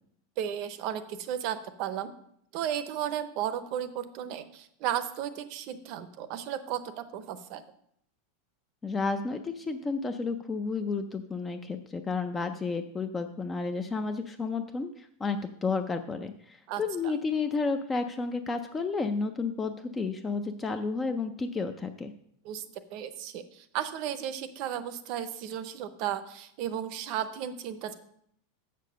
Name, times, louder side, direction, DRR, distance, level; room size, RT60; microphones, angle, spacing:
voice 1, 0.4-2.1 2.5-7.6 16.7-17.1 22.4-22.6 22.9-27.9, right 10 dB, 40° right, 12 dB, 0.6 m, -34 dB
voice 2, 8.8-22.1, left 4 dB, 10° left, 7 dB, 0.4 m, -31 dB
7.5 x 6.7 x 6.3 m, 0.70 s
supercardioid pair, 175°, 0 cm